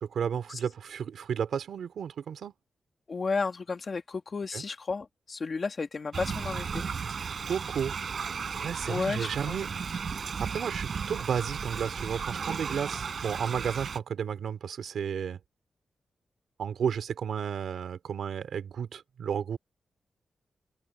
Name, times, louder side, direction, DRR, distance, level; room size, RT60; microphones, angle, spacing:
voice 1, 0.0-2.5 4.5-4.6 7.5-7.9 8.6-9.7 10.2-15.4 16.6-19.6, right 7 dB, 85° right, 3.2 m, -33 dB
voice 2, 3.1-6.8 8.9-9.6, left 4 dB, 40° left, 2.1 m, -33 dB
Thunder / Rain, 6.1-14.0, right 6 dB, 50° right, 5.1 m, -35 dB
open air
wide cardioid pair, 150°, 0 cm